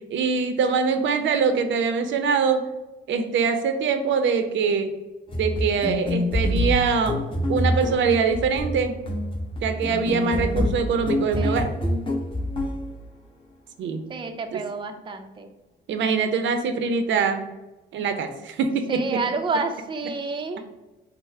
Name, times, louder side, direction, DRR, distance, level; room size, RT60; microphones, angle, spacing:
voice 1, 0.1-2.7 3.1-4.9 5.4-7.2 7.5-9.0 9.6-11.7 13.8-14.0 14.5-14.6 15.9-17.5 17.9-19.2, right 5 dB, 70° right, 8 dB, 0.6 m, -23 dB
sound 1, 5.3-12.9, left 1 dB, 25° left, 0.9 m, -26 dB
voice 2, 11.4-11.8 14.1-15.5 18.9-20.6, right 4 dB, 25° right, 5 dB, 0.5 m, -29 dB
5.4 x 2.1 x 4.6 m, 1.1 s
cardioid pair, 90°, 20 cm